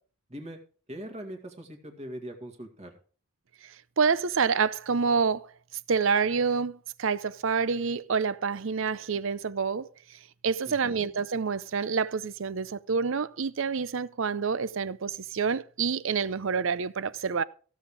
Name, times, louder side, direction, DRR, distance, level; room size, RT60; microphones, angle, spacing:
voice 1, 0.9-3.0 10.7-11.1, right 1 dB, 30° right, 2.1 m, -41 dB
voice 2, 3.6-5.5 5.9-9.9 10.4-17.4, right 5 dB, 65° right, 0.6 m, -27 dB
15.5 x 7.2 x 4.8 m
head